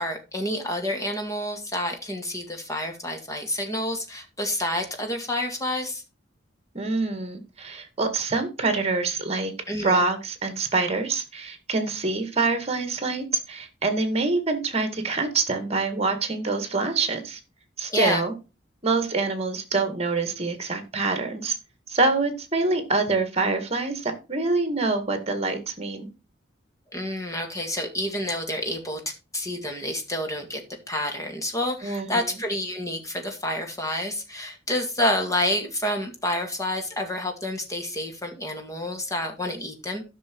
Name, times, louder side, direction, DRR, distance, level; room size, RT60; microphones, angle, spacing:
voice 1, 0.0-6.0 9.7-10.0 17.9-18.2 26.9-29.0 29.3-30.6 30.9-40.0, left 1 dB, 20° left, 3 dB, 2.1 m, -29 dB
voice 2, 6.7-9.5 9.8-17.4 17.8-18.3 18.8-21.6 21.9-26.1 31.8-32.3, right 3 dB, 35° right, 8 dB, 1.9 m, -25 dB
12.0 x 6.2 x 4.6 m, 0.30 s
head